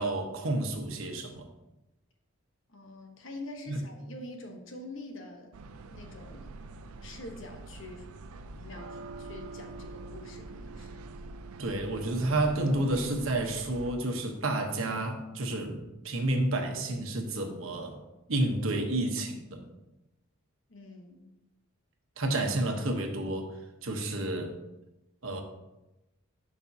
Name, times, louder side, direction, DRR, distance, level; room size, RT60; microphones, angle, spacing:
voice 1, 0.0-1.5 3.7-3.8 11.6-18.0 18.3-19.7 22.2-23.5 23.8-24.5 25.2-25.4, right 2 dB, 70° right, 3 dB, 1.1 m, -30 dB
voice 2, 2.7-5.5 5.9-6.5 7.0-8.1 8.5-11.0 20.7-21.3, left 2 dB, 60° left, 3 dB, 1.2 m, -45 dB
sound 1, 5.5-13.9, right 2 dB, 90° right, 0.5 m, -45 dB
11.5 x 5.3 x 2.8 m, 0.98 s
head